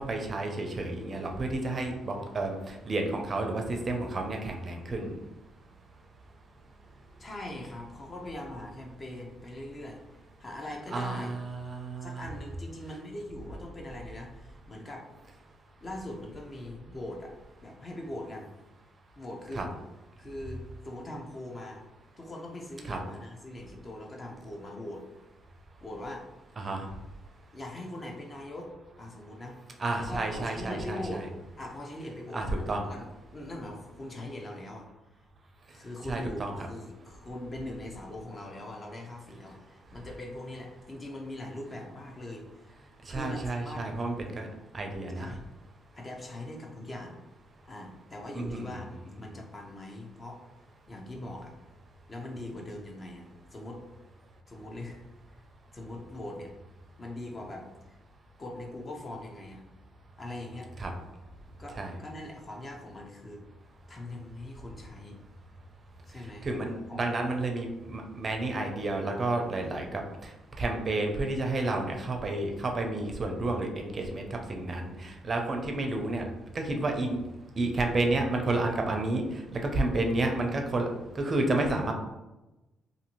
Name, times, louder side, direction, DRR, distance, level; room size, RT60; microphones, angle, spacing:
voice 1, 0.0-5.1 10.9-12.2 19.5-19.7 22.9-23.0 26.6-26.8 29.8-31.3 32.3-32.9 36.1-36.5 43.1-44.5 44.7-45.3 48.3-48.8 60.8-60.9 61.8-62.0 66.4-70.0 70.6-76.2 76.5-77.2 77.6-79.2 79.5-80.9 81.2-81.9, right 2 dB, 40° right, 3 dB, 0.4 m, -30 dB
voice 2, 7.2-10.0 10.4-11.3 12.0-15.1 15.8-17.3 17.6-18.5 19.2-19.6 20.2-21.8 22.2-25.0 25.8-26.3 27.5-28.7 29.0-29.6 30.0-31.3 31.6-34.9 35.7-42.7 43.1-43.9 45.2-45.4 45.9-47.2 47.6-48.9 49.2-50.4 50.9-51.5 52.1-53.8 54.5-55.1 55.7-56.5 57.0-58.0 58.4-59.6 60.2-60.7 61.6-63.4 63.9-65.2 66.1-66.5 66.9-67.1, left 1 dB, 30° left, 1 dB, 0.6 m, -41 dB
2.6 x 2.6 x 2.9 m, 1.0 s
cardioid pair, 90°, 0 cm